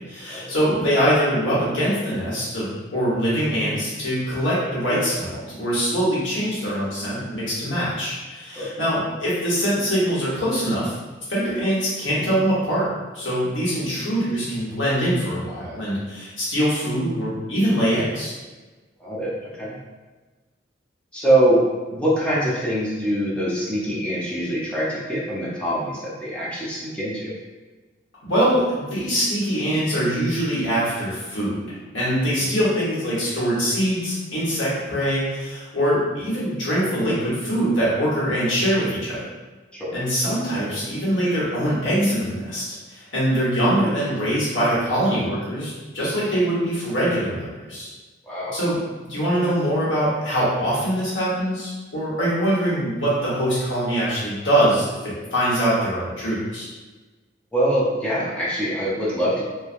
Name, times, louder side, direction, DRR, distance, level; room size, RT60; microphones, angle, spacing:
voice 1, 0.1-10.9 11.3-12.9 13.1-18.3 28.2-39.2 39.9-47.9 48.5-48.8 49.0-56.6, equal, 80° left, -8 dB, 1.1 m, -23 dB
voice 2, 19.0-19.8 21.1-27.3 32.4-32.6 39.7-40.0 48.2-48.6 57.5-59.4, right 1 dB, 5° left, -7 dB, 0.6 m, -24 dB
3.1 x 2.2 x 2.5 m, 1.3 s
head